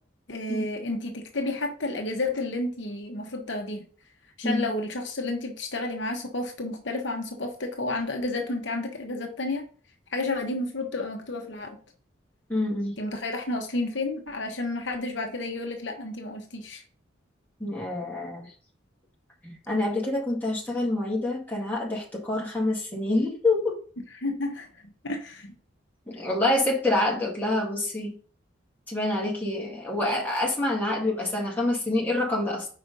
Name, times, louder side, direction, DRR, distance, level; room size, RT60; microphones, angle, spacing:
voice 1, 0.3-3.8 4.4-9.7 10.1-11.8 13.0-16.8 24.2-24.7 25.0-25.5 26.1-26.2, left 2 dB, 65° left, 3 dB, 1.1 m, -31 dB
voice 2, 12.5-13.0 17.6-18.5 19.4-23.8 26.1-28.1 28.9-32.7, left 2 dB, 10° left, -4 dB, 2.0 m, -27 dB
5.0 x 4.9 x 5.4 m, 0.42 s
head